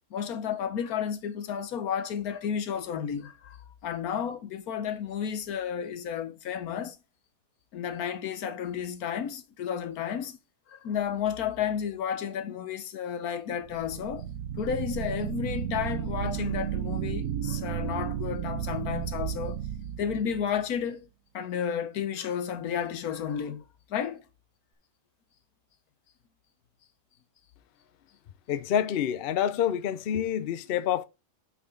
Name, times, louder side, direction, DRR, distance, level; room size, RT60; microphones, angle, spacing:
voice 1, 0.1-3.6 3.8-7.0 7.7-10.4 10.7-14.3 14.6-19.6 20.0-21.1 21.3-23.6 23.9-24.2, left 8 dB, 65° left, 1.3 m, -32 dB
sound 1, 13.6-20.7, right 10 dB, 65° right, 1.1 m, -33 dB
voice 2, 28.5-31.0, left 9 dB, 80° left, 0.5 m, -27 dB
6.5 x 5.9 x 3.8 m
omnidirectional pair, 1.7 m